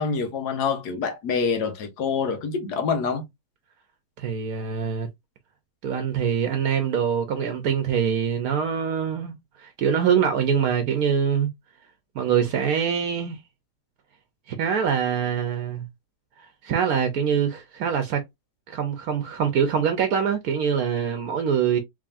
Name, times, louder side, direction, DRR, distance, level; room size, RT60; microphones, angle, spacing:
voice 1, 0.0-3.2, left 5 dB, 85° left, 1.4 m, -26 dB
voice 2, 4.2-5.1 5.8-11.5 12.1-13.4 14.5-15.8 16.4-18.2 18.7-21.8, right 7 dB, 70° right, 1.1 m, -24 dB
3.6 x 3.4 x 2.5 m
omnidirectional pair, 1.7 m